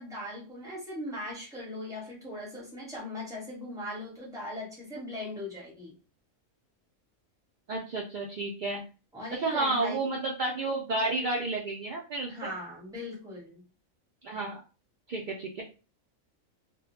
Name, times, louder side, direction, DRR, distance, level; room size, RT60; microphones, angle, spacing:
voice 1, 0.0-6.0 9.1-10.1 12.3-13.6, left 1 dB, 5° right, -4 dB, 0.8 m, -39 dB
voice 2, 7.7-8.8 9.4-12.3 14.2-14.6 15.1-15.6, right 2 dB, 70° right, -1 dB, 0.4 m, -31 dB
2.2 x 2.1 x 3.0 m, 0.34 s
omnidirectional pair, 1.3 m